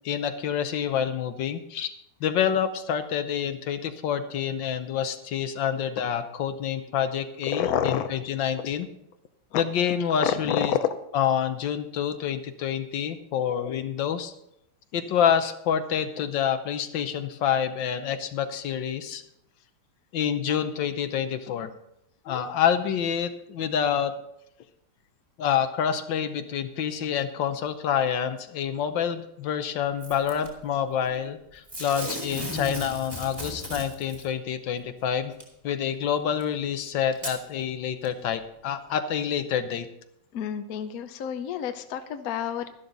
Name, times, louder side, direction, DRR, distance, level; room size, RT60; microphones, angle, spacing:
voice 1, 0.0-1.9 2.2-8.9 9.5-10.7 11.1-14.3 14.9-19.2 20.1-21.7 22.2-24.1 25.4-35.3 35.6-39.9, left 8 dB, 75° left, 9 dB, 1.6 m, -27 dB
voice 2, 7.5-8.1 9.5-9.6 10.2-10.6 40.3-42.7, left 9 dB, 60° left, 9 dB, 1.1 m, -29 dB
Packing tape duct tape / Tearing, 30.0-30.5 31.7-34.3 35.4-35.5 36.4-36.5 37.1-37.4 38.0-38.1, equal, 15° right, 2.6 m, -35 dB
12.5 x 12.0 x 4.0 m, 0.78 s
omnidirectional pair, 2.0 m